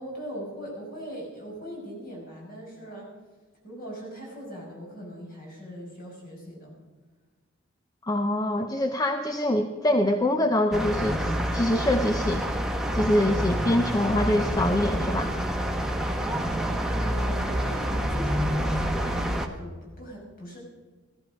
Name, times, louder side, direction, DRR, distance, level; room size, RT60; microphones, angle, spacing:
voice 1, 0.0-3.1 3.6-6.7 16.8-20.6, equal, 45° left, -2 dB, 5.9 m, -40 dB
voice 2, 8.0-12.5 12.9-15.3, left 1 dB, 20° left, 6 dB, 0.6 m, -24 dB
sound 1, 10.7-19.5, equal, 5° right, 1.1 m, -27 dB
16.0 x 14.0 x 5.2 m, 1.3 s
head